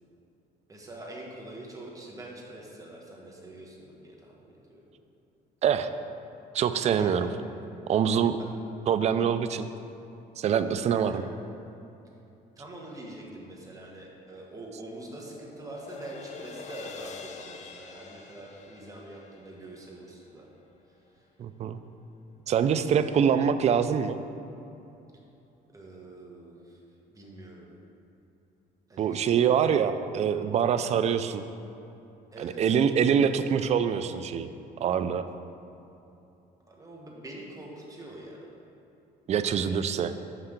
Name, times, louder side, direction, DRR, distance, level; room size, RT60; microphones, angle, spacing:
voice 1, 0.7-4.8 6.9-7.3 11.0-11.4 12.6-20.5 20.9-21.3 22.6-23.2 25.7-26.8 27.1-27.7 28.9-29.4 32.3-32.8 36.7-38.4 39.5-40.1, right 1 dB, 20° right, -2 dB, 1.5 m, -45 dB
voice 2, 6.5-7.3 7.9-8.4 8.9-9.7 10.4-11.2 21.4-21.8 22.5-24.2 29.0-31.4 32.4-34.5 34.8-35.2 39.3-40.1, right 8 dB, 40° right, 11 dB, 0.4 m, -24 dB
sound 1, 14.3-20.6, left 5 dB, 45° left, 0.7 m, -46 dB
5.9 x 5.5 x 6.6 m, 2.9 s
cardioid pair, 110°, 17 cm